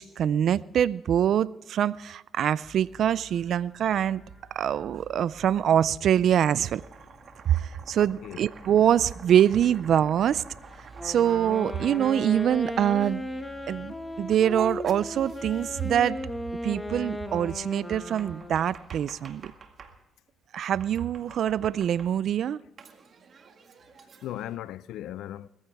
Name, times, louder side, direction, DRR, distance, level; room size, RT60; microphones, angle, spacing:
voice 1, 0.0-4.2 4.5-6.8 7.5-10.4 11.0-13.2 13.7-16.2 16.6-19.5 20.5-22.6, right 10 dB, 65° right, 0.4 m, -24 dB
Livestock farm animals working animals, 2.6-17.5, left 1 dB, 15° right, 6.7 m, -52 dB
Domestic sounds home sounds, 6.7-13.1 14.9-16.0 17.7-20.0 20.8-22.4 22.8-24.6, right 5 dB, 50° right, 2.0 m, -50 dB
voice 2, 7.9-8.4 24.2-25.5, left 12 dB, 85° left, 0.5 m, -37 dB
Wind instrument woodwind instrument, 10.9-18.8, left 1 dB, 10° left, 1.9 m, -36 dB
20.5 x 15.0 x 3.6 m
cardioid pair, 90°, 0 cm